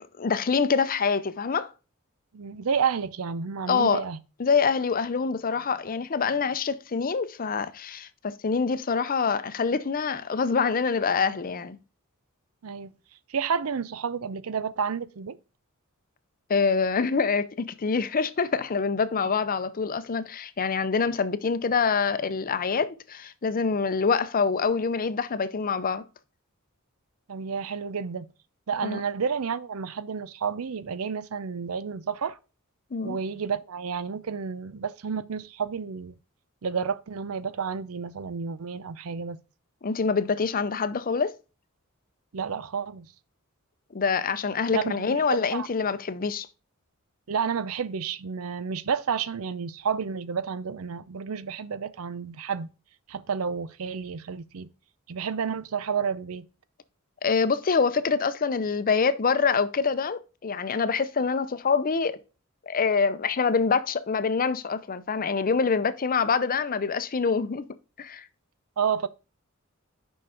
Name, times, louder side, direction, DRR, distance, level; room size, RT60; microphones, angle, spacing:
voice 1, 0.0-1.7 3.7-4.1 4.4-11.8 16.5-26.0 28.8-29.0 32.9-33.2 39.8-41.3 43.9-46.5 57.2-62.2 62.7-67.7 68.0-68.3, left 5 dB, 40° left, 0.6 m, -25 dB
voice 2, 2.3-4.2 12.6-12.9 13.3-15.4 27.3-28.3 28.7-32.4 33.0-36.2 36.6-39.4 42.3-43.1 44.7-45.2 45.5-45.7 47.3-52.7 53.1-54.7 55.1-56.5 68.8-69.1, right 6 dB, 75° right, 0.6 m, -30 dB
6.9 x 5.5 x 4.8 m
head